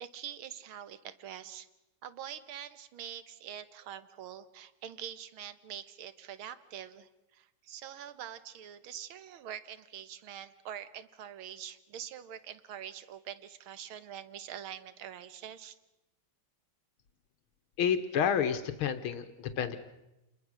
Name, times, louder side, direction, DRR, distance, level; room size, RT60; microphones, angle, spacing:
voice 1, 0.0-1.7 2.0-15.8, right 10 dB, 80° right, 13 dB, 2.0 m, -45 dB
voice 2, 17.8-19.8, left 8 dB, 90° left, 9 dB, 2.0 m, -30 dB
29.5 x 21.5 x 6.4 m, 0.96 s
omnidirectional pair, 2.3 m